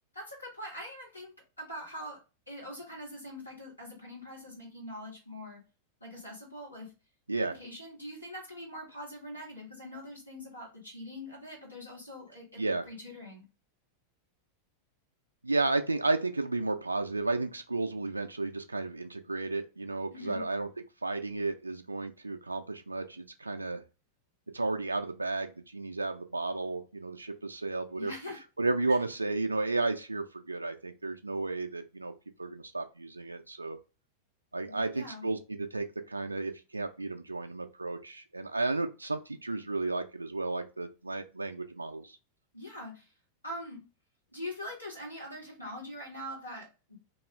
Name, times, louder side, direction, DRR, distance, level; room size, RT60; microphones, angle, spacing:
voice 1, 0.1-2.2 2.5-5.6 6.0-6.9 7.5-13.4 20.1-20.4 28.0-28.4 28.9-29.0 34.6-35.3 42.5-43.1 43.4-43.8 44.3-47.0, left 1 dB, 85° left, -4 dB, 1.3 m, -43 dB
voice 2, 15.4-20.7 21.0-23.8 24.5-28.1 28.6-32.1 32.4-33.8 34.5-42.2, right 3 dB, 80° right, 6 dB, 0.3 m, -33 dB
2.4 x 2.3 x 3.2 m, 0.31 s
figure-of-eight pair, 90°, 0 cm